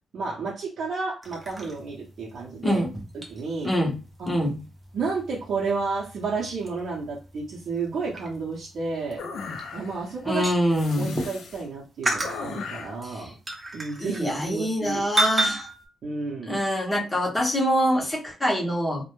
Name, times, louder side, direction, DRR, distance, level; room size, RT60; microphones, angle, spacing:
voice 1, 0.1-2.8 3.3-3.7 4.2-4.3 4.9-9.2 9.7-10.4 11.0-13.3 13.7-15.1 16.0-16.6, right 4 dB, 60° right, -5 dB, 0.6 m, -31 dB
sound 1, 1.2-11.6 12.0-14.9 15.2-15.8, right 1 dB, 20° right, 0.6 m, -33 dB
voice 2, 4.3-4.6 10.2-11.2 13.0-13.3 14.0-15.7 16.5-19.0, equal, 10° left, -2 dB, 0.7 m, -25 dB
sound 2, 9.2-10.1 10.7-11.6 12.2-13.0, left 4 dB, 75° left, 0.4 m, -37 dB
2.1 x 2.0 x 2.9 m, 0.33 s
cardioid pair, 135°, 0 cm